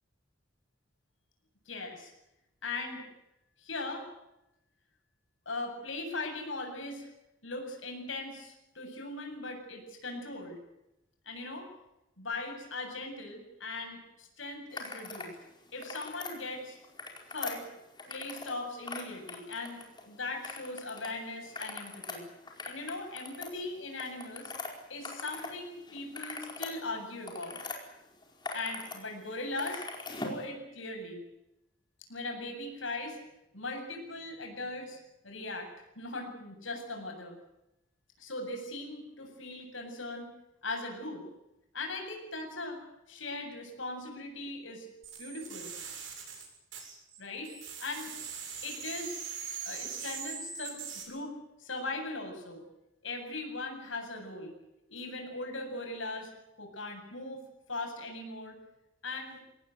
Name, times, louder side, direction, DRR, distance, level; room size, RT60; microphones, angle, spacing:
voice 1, 1.7-2.1 2.6-3.0 3.6-4.1 5.5-7.1 7.4-10.6 11.3-11.7 12.2-15.4 15.7-16.8 17.3-17.6 18.1-22.3 22.7-24.5 24.9-27.6 28.5-31.2 32.1-33.2 33.5-35.0 35.2-35.7 36.0-37.4 38.2-40.3 40.6-41.2 41.7-42.8 43.1-44.9 45.2-45.7 47.2-47.5 47.8-48.2 48.6-49.2 49.7-52.6 53.0-54.5 54.9-56.3 56.6-57.4 57.7-58.6 59.0-59.4, left 2 dB, 80° left, 3 dB, 7.9 m, -39 dB
sound 1, 14.7-15.3 15.7-16.3 16.8-18.6 18.8-20.0 20.4-21.1 21.4-25.5 25.9-27.8 28.2-29.0 29.2-30.4, left 3 dB, 25° left, 4.8 m, -41 dB
sound 2, 45.0-47.2 47.4-51.0, right 6 dB, 70° right, 7.3 m, -41 dB
25.5 x 18.0 x 9.3 m, 0.90 s
head